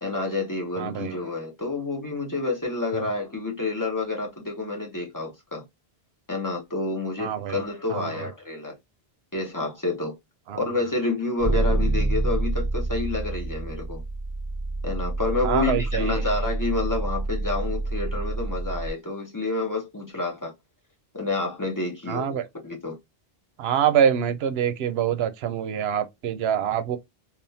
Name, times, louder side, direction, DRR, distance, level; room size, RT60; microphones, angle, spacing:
voice 1, 0.0-5.6 6.3-8.7 9.3-10.2 10.5-14.0 14.8-20.5 21.1-23.0, left 3 dB, 20° left, 0.7 m, -29 dB
voice 2, 0.8-1.1 2.9-3.1 7.2-7.6 7.9-8.2 10.5-10.6 15.4-16.2 22.1-22.4 23.6-27.0, right 9 dB, 80° right, 0.8 m, -25 dB
sound 1, 11.4-18.9, right 2 dB, 20° right, 0.8 m, -27 dB
3.5 x 2.4 x 2.7 m
omnidirectional pair, 1.0 m